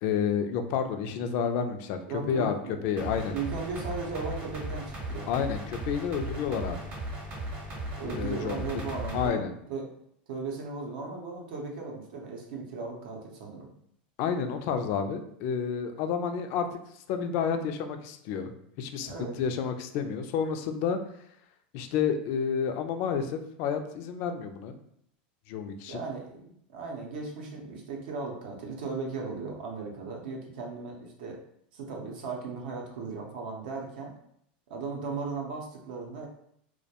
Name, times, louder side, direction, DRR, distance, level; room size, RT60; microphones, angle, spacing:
voice 1, 0.0-2.5 2.8-3.3 5.3-6.8 8.0-8.8 9.1-9.5 14.2-16.8 17.1-18.5 18.8-21.0 21.7-24.7 25.5-26.0, left 7 dB, 50° left, 7 dB, 0.3 m, -30 dB
voice 2, 2.1-2.8 3.3-5.3 8.0-9.4 9.7-9.9 10.3-13.7 19.0-19.4 25.9-31.4 31.7-34.1 34.7-36.3, right 4 dB, 70° right, 0 dB, 0.6 m, -37 dB
sound 1, 3.0-9.3, right 1 dB, 30° right, 0.7 m, -37 dB
2.2 x 2.1 x 2.8 m, 0.70 s
supercardioid pair, 140°, 5 cm